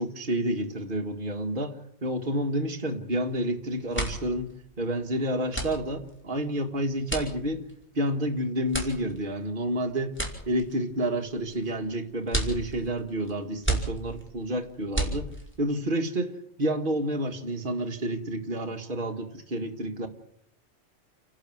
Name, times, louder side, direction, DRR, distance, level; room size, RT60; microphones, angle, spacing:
voice 1, 0.0-4.5 4.8-7.6 7.9-10.1 10.5-15.3 15.6-20.1, right 1 dB, 45° right, 2 dB, 2.0 m, -29 dB
sound 1, 3.3-3.5 3.8-15.7, right 1 dB, 10° left, 5.0 m, -34 dB
30.0 x 12.0 x 7.9 m, 0.71 s
omnidirectional pair, 1.3 m